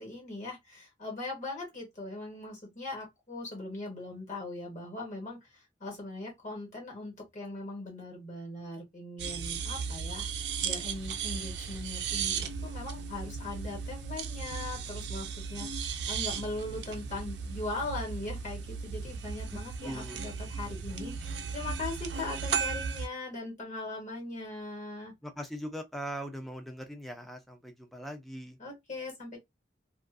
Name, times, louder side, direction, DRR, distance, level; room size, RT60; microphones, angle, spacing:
voice 1, 0.0-10.3 10.6-25.1 28.6-29.4, left 2 dB, 45° left, 1.2 m, -40 dB
sound 1, 9.2-23.1, right 6 dB, 80° right, 0.5 m, -36 dB
voice 2, 19.5-20.2 25.2-28.6, equal, ahead, 0.5 m, -41 dB
2.5 x 2.3 x 2.4 m
head